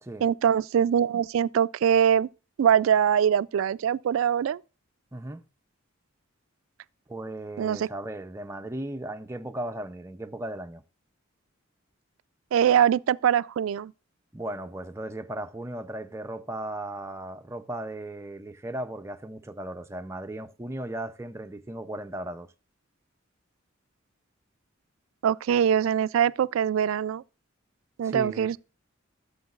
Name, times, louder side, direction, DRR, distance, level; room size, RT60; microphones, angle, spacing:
voice 1, 0.2-2.3 2.6-4.6 7.6-7.9 12.5-13.9 25.2-27.2 28.0-28.6, right 8 dB, 80° right, 0.3 m, -23 dB
voice 2, 5.1-5.4 7.1-10.8 14.3-22.5 28.0-28.6, right 1 dB, 15° right, 0.5 m, -36 dB
13.5 x 7.1 x 2.4 m
head